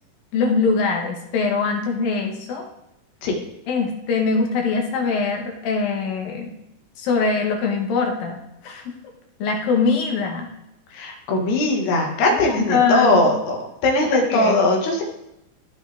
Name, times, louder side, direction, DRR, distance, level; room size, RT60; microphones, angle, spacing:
voice 1, 0.3-2.7 3.7-6.5 7.0-8.9 9.4-10.5 12.3-13.3 14.1-14.6, left 4 dB, 70° left, 2 dB, 3.0 m, -23 dB
voice 2, 10.9-13.6 13.8-15.0, left 2 dB, 90° left, 2 dB, 3.7 m, -20 dB
15.0 x 5.6 x 3.5 m, 0.87 s
omnidirectional pair, 4.4 m